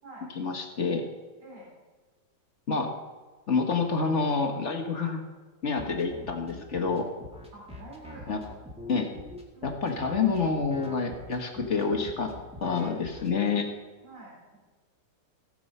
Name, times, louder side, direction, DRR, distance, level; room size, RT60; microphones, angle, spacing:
voice 1, 0.4-1.1 2.7-2.9 3.5-5.2 5.6-7.1 8.3-8.4 8.9-9.1 9.6-12.3 12.6-13.7, left 4 dB, 45° left, 3 dB, 1.5 m, -28 dB
voice 2, 1.4-1.7 7.5-8.3 9.5-9.8 14.0-14.6, right 2 dB, 65° right, -5 dB, 4.6 m, -47 dB
sound 1, 5.7-13.3, left 1 dB, 5° right, 1.8 m, -43 dB
17.0 x 7.8 x 5.5 m, 1.3 s
omnidirectional pair, 1.9 m